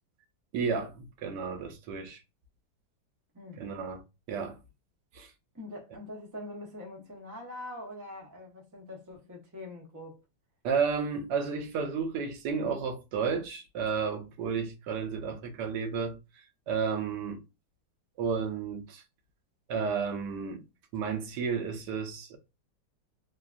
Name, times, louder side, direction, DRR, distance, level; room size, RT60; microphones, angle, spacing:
voice 1, 0.5-2.2 3.6-4.0 4.3-4.6 5.1-5.3 10.6-16.2 16.7-17.4 18.2-19.0 19.7-20.6 20.9-22.4, right 5 dB, 75° right, 1.2 m, -32 dB
voice 2, 3.3-3.7 5.5-10.2, left 1 dB, 25° right, 0.3 m, -43 dB
3.3 x 2.2 x 2.4 m
omnidirectional pair, 1.9 m